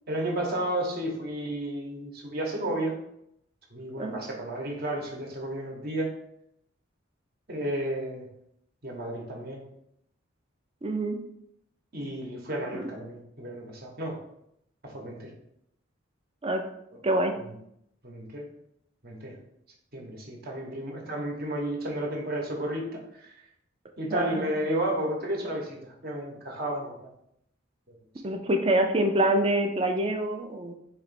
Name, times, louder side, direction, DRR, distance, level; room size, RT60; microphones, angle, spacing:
voice 1, 0.1-2.9 3.7-6.1 7.5-8.3 8.8-9.6 11.9-14.2 14.8-15.3 18.0-18.5 19.0-19.4 19.9-23.5 24.0-27.0, right 1 dB, 50° right, -1 dB, 1.0 m, -32 dB
voice 2, 10.8-11.2 12.7-12.9 16.4-16.6 17.0-17.3 24.1-24.5 28.2-30.7, right 1 dB, 30° right, 3 dB, 0.5 m, -26 dB
4.2 x 3.0 x 4.2 m, 0.75 s
head